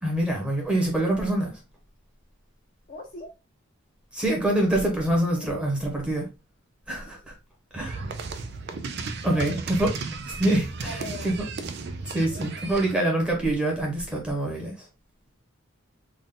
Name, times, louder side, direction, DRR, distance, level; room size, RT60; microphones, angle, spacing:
voice 1, 0.0-1.6 4.1-6.3 6.9-7.3 7.7-8.0 9.2-9.9 10.2-11.4 12.0-14.9, right 1 dB, 5° right, 1.1 m, -25 dB
voice 2, 2.9-3.3 5.4-5.5 9.3-9.6 10.8-11.5, left 1 dB, 40° left, 0.8 m, -40 dB
sound 1, 7.8-12.9, right 4 dB, 55° right, 0.4 m, -34 dB
3.8 x 2.5 x 3.7 m
head